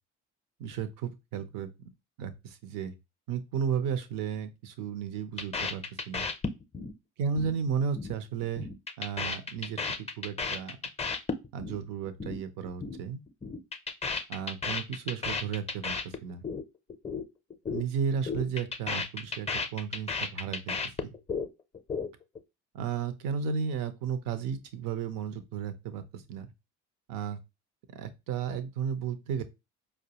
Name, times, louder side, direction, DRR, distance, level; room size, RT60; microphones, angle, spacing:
voice 1, 0.6-1.7 2.2-2.9 3.3-6.2 7.2-8.7 9.0-10.8 11.5-13.2 14.3-15.9 16.2-16.4 17.7-20.8 22.7-26.5 27.1-27.4 27.9-29.4, right 7 dB, 65° right, 11 dB, 0.7 m, -34 dB
sound 1, 5.4-6.9 7.2-7.5 7.8-8.1 8.4-11.8 12.0-12.4 12.6-13.0 13.3-16.6 16.9-17.2 17.5-17.8 18.1-21.5 21.7-22.4, left 4 dB, 20° left, 0.5 m, -33 dB
4.6 x 2.1 x 2.8 m, 0.24 s
hypercardioid pair, 65°, 36 cm